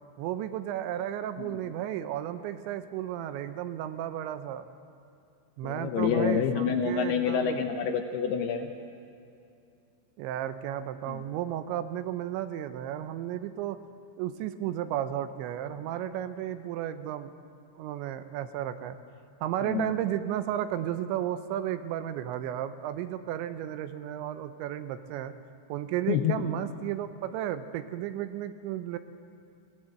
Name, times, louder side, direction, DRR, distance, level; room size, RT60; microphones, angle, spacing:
voice 1, 0.2-4.7 5.6-7.6 10.2-13.8 14.2-17.3 17.8-19.0 19.4-25.3 25.7-29.0, right 11 dB, 80° right, 11 dB, 3.0 m, -33 dB
voice 2, 5.6-8.7 11.1-11.2 19.6-19.9 26.1-26.4, left 7 dB, 75° left, 5 dB, 2.5 m, -28 dB
20.5 x 18.0 x 7.7 m, 2.5 s
omnidirectional pair, 5.4 m